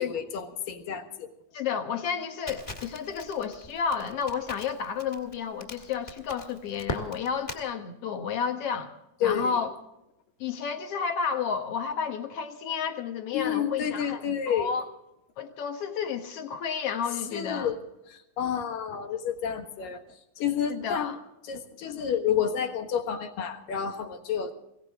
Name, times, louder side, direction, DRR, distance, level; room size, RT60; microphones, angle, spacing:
voice 1, 0.0-1.3 9.2-9.6 13.3-14.8 17.3-17.8 18.1-20.0 20.4-21.2 21.4-24.5, left 8 dB, 80° left, 6 dB, 3.2 m, -30 dB
voice 2, 1.5-8.9 9.2-9.7 10.4-14.9 15.4-17.7 20.7-21.2, left 6 dB, 55° left, 6 dB, 2.1 m, -31 dB
Crackle, 2.5-7.6, left 1 dB, 20° left, 1.8 m, -40 dB
22.0 x 17.5 x 3.6 m, 0.87 s
omnidirectional pair, 3.9 m